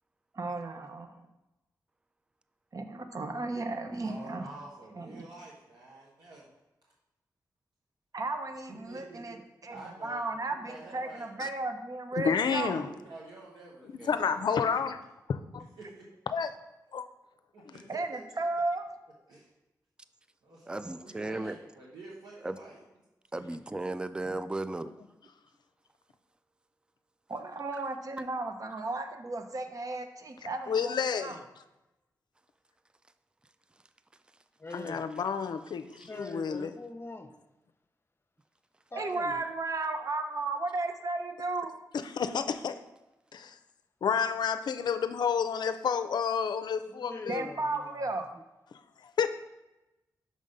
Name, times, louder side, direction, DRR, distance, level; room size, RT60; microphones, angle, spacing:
voice 1, 0.3-1.1 2.7-4.5 4.9-5.2 8.1-9.4 9.6-12.8 17.9-18.9 27.3-31.4 38.9-41.7 47.3-48.3, right 3 dB, 50° right, 0.8 m, -34 dB
voice 2, 3.9-6.5 8.7-9.4 9.7-11.3 12.5-14.9 15.8-16.0 17.5-18.4 19.3-19.5 20.4-22.8, right 2 dB, 85° right, 1.3 m, -49 dB
voice 3, 12.2-12.9 14.1-15.0 15.5-15.6 16.3-16.5 16.9-17.0 17.7-17.8 30.7-31.4 34.7-36.7 41.9-42.8 43.3-43.6 44.0-47.5 48.7-48.8 49.2-49.3, left 6 dB, 80° left, 0.4 m, -30 dB
voice 4, 20.7-21.6 22.4-22.6 23.3-24.9, right 2 dB, 15° right, 0.3 m, -35 dB
voice 5, 34.6-35.0 36.1-37.4 38.9-39.4 46.9-48.2, left 2 dB, 35° left, 0.7 m, -43 dB
6.3 x 3.7 x 5.4 m
cardioid pair, 60°, 7 cm